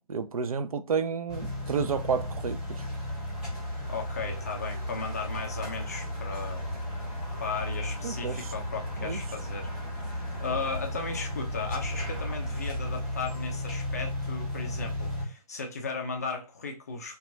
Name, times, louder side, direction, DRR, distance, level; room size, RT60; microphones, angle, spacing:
voice 1, 0.1-2.8 8.0-8.5 9.0-9.2, right 6 dB, 60° right, 0.4 m, -31 dB
sound 1, 1.3-15.2, left 1 dB, 5° right, 1.2 m, -34 dB
voice 2, 3.9-6.6 7.4-9.7 10.0-17.2, left 4 dB, 25° left, 0.3 m, -36 dB
2.8 x 2.2 x 2.5 m
figure-of-eight pair, 150°, 20 cm